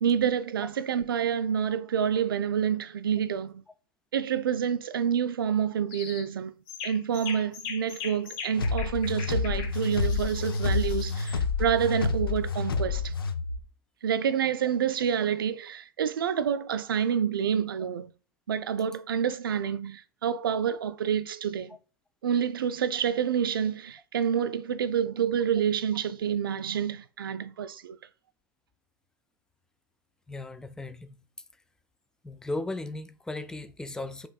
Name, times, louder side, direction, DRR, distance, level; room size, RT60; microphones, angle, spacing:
voice 1, 0.0-3.6 4.1-6.5 6.8-13.1 14.0-18.1 18.5-21.7 22.2-28.0, right 8 dB, 75° right, 0.4 m, -28 dB
sound 1, 5.9-6.3 6.7-11.4, left 6 dB, 45° left, 0.8 m, -41 dB
sound 2, 8.6-13.6, left 4 dB, 85° left, 0.5 m, -29 dB
voice 2, 30.3-31.2 32.2-34.3, left 2 dB, 5° left, 0.4 m, -36 dB
5.2 x 3.0 x 2.3 m
hypercardioid pair, 100°, 12 cm